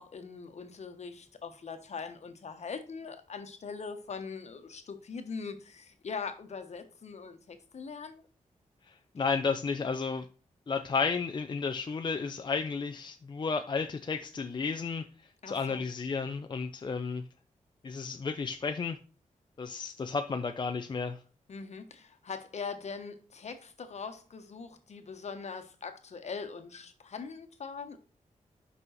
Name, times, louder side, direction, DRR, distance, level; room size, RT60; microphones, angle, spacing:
voice 1, 0.0-8.2 15.4-15.8 21.5-28.0, left 5 dB, 55° left, 8 dB, 1.3 m, -41 dB
voice 2, 9.1-10.3 10.7-15.0 15.5-17.2 17.8-19.0 19.6-21.2, left 5 dB, 35° left, 7 dB, 0.5 m, -32 dB
5.5 x 5.4 x 6.3 m, 0.36 s
wide cardioid pair, 105°, 13 cm